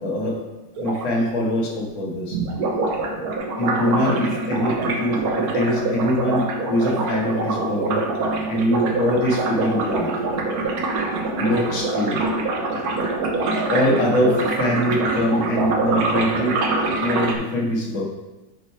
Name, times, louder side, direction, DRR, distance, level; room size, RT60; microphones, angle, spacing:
voice 1, 0.0-0.4 0.7-2.4 3.6-8.0 8.5-10.1 11.4-12.2 13.6-16.6 17.0-18.0, left 1 dB, 90° left, -2 dB, 2.2 m, -23 dB
sound 1, 0.8-1.1 2.3-17.4, right 3 dB, 60° right, 1.2 m, -24 dB
10.0 x 4.4 x 3.3 m, 1.1 s
omnidirectional pair, 2.1 m